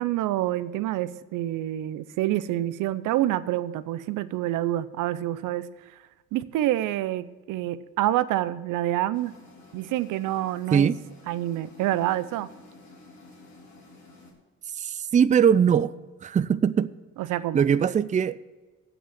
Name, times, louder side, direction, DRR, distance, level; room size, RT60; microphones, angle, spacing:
voice 1, 0.0-5.7 6.3-9.3 9.7-10.9 11.3-12.5 17.2-17.6, right 14 dB, 90° right, 0.6 m, -27 dB
sound 1, 9.1-14.3, left 2 dB, 70° left, 3.7 m, -51 dB
voice 2, 14.8-15.9 16.2-16.9 17.5-18.4, right 7 dB, 25° right, 0.4 m, -21 dB
8.0 x 7.7 x 8.2 m
cardioid pair, 90°, 30 cm